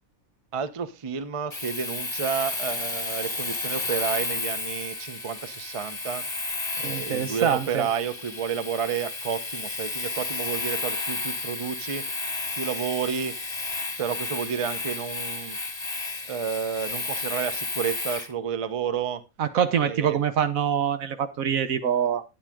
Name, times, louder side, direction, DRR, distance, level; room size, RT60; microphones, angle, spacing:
voice 1, 0.5-6.3 6.8-12.0 12.6-13.4 14.0-15.6 16.3-19.2 19.8-20.2, right 7 dB, 30° right, 13 dB, 0.7 m, -30 dB
Domestic sounds home sounds, 1.5-18.3, left 3 dB, 20° left, 1.6 m, -32 dB
voice 2, 6.8-7.9 19.4-22.2, right 8 dB, 80° right, 11 dB, 1.4 m, -25 dB
10.0 x 8.7 x 3.6 m, 0.26 s
omnidirectional pair, 1.4 m